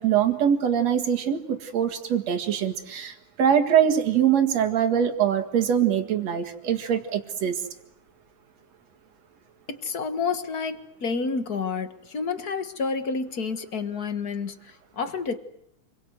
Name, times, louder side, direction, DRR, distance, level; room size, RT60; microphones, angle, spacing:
voice 1, 0.0-3.1 3.4-7.6, right 9 dB, 60° right, 7 dB, 3.0 m, -23 dB
voice 2, 9.7-15.4, left 5 dB, 40° left, 9 dB, 1.5 m, -29 dB
28.5 x 22.5 x 8.0 m, 0.75 s
omnidirectional pair, 3.6 m